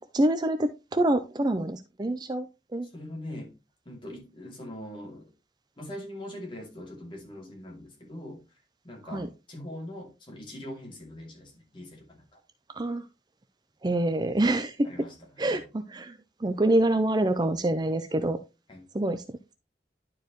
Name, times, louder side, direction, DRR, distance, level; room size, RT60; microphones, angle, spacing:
voice 1, 0.1-2.5 2.7-2.9 9.1-9.3 12.8-13.0 13.8-14.9 15.4-18.4 18.9-19.2, right 1 dB, 25° right, 0.5 m, -26 dB
voice 2, 2.8-3.6 3.8-5.3 5.8-12.4 14.8-15.7 18.7-18.9, left 1 dB, 30° left, 2.5 m, -42 dB
11.5 x 4.6 x 3.0 m
head